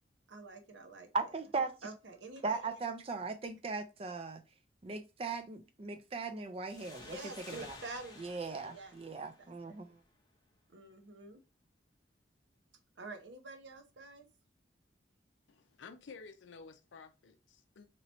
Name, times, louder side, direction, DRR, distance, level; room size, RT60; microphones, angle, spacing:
voice 1, 0.3-1.1 1.8-2.7 7.0-8.2 8.7-9.0 9.4-9.8 10.7-11.4 13.0-14.3, right 3 dB, 80° right, 0.8 m, -48 dB
voice 2, 1.1-1.9 2.4-4.4 4.8-7.2 7.5-7.8 8.2-10.0, right 4 dB, 30° right, 0.4 m, -38 dB
sound 1, 6.7-10.1, left 3 dB, 20° left, 0.6 m, -53 dB
voice 3, 15.5-17.9, left 4 dB, 90° left, 0.5 m, -53 dB
2.9 x 2.7 x 4.2 m
head